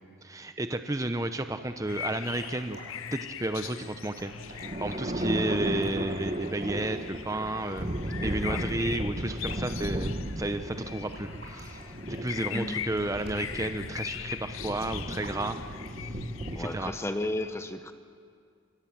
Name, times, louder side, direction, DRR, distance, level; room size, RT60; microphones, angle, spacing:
voice 1, 0.2-2.8 3.1-7.9 8.2-11.8 12.1-15.6 16.6-16.9, right 1 dB, 15° right, 8 dB, 0.8 m, -32 dB
sound 1, 1.9-16.8, left 9 dB, 80° left, 0.6 m, -41 dB
sound 2, 2.1-16.5, right 2 dB, 55° right, 5.8 m, -51 dB
sound 3, 3.7-16.8, right 1 dB, 35° right, 1.7 m, -35 dB
voice 2, 12.5-12.9 16.5-17.9, left 1 dB, 15° left, 8 dB, 0.8 m, -34 dB
27.5 x 25.0 x 7.4 m, 2.2 s
head